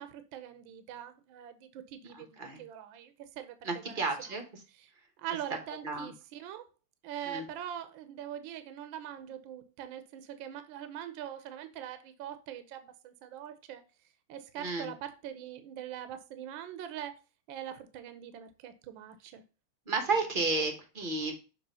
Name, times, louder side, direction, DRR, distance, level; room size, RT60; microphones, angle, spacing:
voice 1, 0.0-4.0 4.7-4.9 5.2-6.7 7.0-13.8 14.3-17.1 17.5-19.4 20.0-20.1, right 10 dB, 70° right, 1.4 m, -43 dB
voice 2, 2.1-2.6 3.6-4.4 5.8-6.1 7.2-7.4 14.6-14.9 19.9-21.3, right 3 dB, 35° right, 0.9 m, -32 dB
6.8 x 3.3 x 5.5 m
omnidirectional pair, 2.4 m